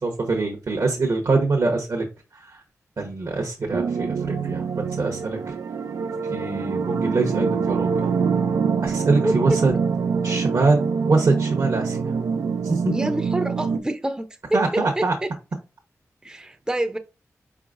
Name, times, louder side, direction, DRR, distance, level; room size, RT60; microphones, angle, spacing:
voice 1, 0.0-2.0 2.4-2.6 3.0-5.5 6.3-8.1 8.8-9.7 10.2-12.1 12.6-13.1 14.5-15.1, right 3 dB, 65° right, 1.0 m, -24 dB
sound 1, 3.7-13.8, right 5 dB, 85° right, 0.4 m, -25 dB
voice 2, 9.2-9.6 12.9-15.3 16.2-17.0, right 1 dB, 15° right, 0.5 m, -27 dB
4.7 x 4.5 x 2.5 m
cardioid pair, 50°, 6 cm